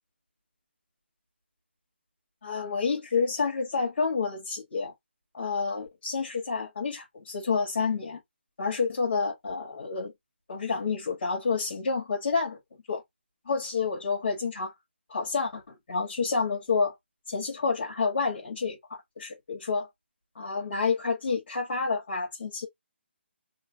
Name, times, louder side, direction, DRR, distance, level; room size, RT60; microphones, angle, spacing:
voice 1, 2.4-4.9 5.3-8.2 8.6-10.1 10.5-12.6 12.9-13.0 13.5-14.7 15.1-16.9 17.3-18.8 19.2-19.9 20.4-22.7, left 4 dB, 55° left, 1.8 m, -29 dB
3.1 x 2.7 x 2.9 m
hypercardioid pair, 165°, 6 cm